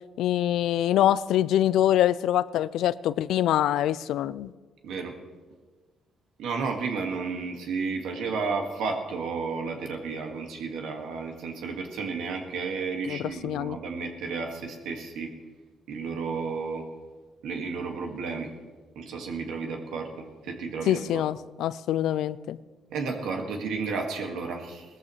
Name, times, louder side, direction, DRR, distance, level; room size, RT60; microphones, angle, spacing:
voice 1, 0.2-4.5 13.0-13.8 20.9-22.6, left 12 dB, 85° left, 18 dB, 0.4 m, -25 dB
voice 2, 4.8-5.1 6.4-15.3 15.9-16.8 17.4-18.5 19.0-21.2 22.9-24.8, right 4 dB, 85° right, 2 dB, 1.9 m, -32 dB
18.0 x 14.0 x 3.2 m, 1.4 s
cardioid pair, 90°, 0 cm